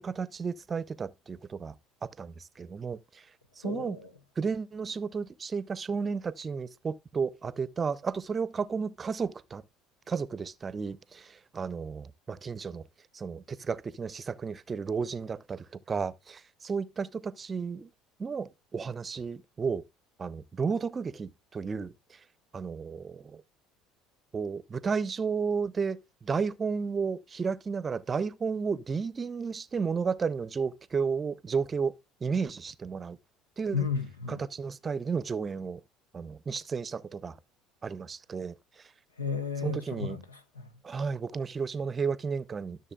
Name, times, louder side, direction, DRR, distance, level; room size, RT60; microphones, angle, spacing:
voice 1, 0.0-1.7 2.0-3.2 3.6-4.0 4.4-9.6 10.1-12.8 13.1-17.9 18.2-19.8 20.2-21.9 22.5-23.4 24.3-31.9 32.2-33.2 33.6-33.9 34.3-35.8 36.1-37.4 37.8-38.5 39.6-40.2 40.8-42.8, right 5 dB, 30° right, 0.6 m, -33 dB
voice 2, 3.6-4.1 33.7-34.4 39.2-40.7, left 6 dB, 80° left, 0.9 m, -33 dB
13.5 x 6.8 x 2.2 m
figure-of-eight pair, 60°, 0 cm